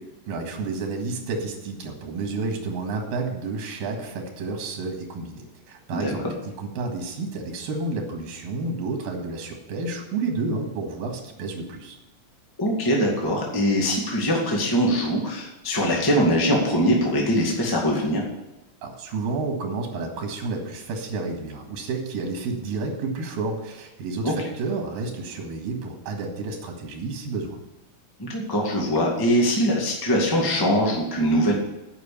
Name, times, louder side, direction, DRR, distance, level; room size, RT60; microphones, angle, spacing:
voice 1, 0.3-6.3 6.6-12.0 18.8-27.6, right 3 dB, 85° right, 3 dB, 3.5 m, -30 dB
voice 2, 12.6-18.2 24.2-24.3 28.2-31.5, equal, 10° left, -2 dB, 1.1 m, -22 dB
9.5 x 5.8 x 8.5 m, 0.99 s
omnidirectional pair, 4.0 m